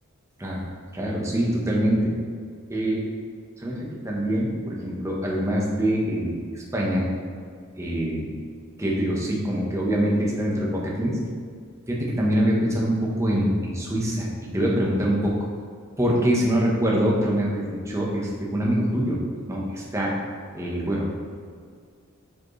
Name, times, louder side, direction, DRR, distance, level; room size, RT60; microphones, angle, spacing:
voice 1, 0.9-2.1 2.7-3.1 3.6-3.8 4.0-6.4 6.7-7.1 7.8-8.2 8.8-11.1 11.9-14.3 14.5-15.3 16.0-19.2 19.5-19.6 19.9-20.1 20.5-21.1, equal, 15° right, -3 dB, 1.0 m, -24 dB
7.1 x 5.1 x 3.2 m, 2.1 s
head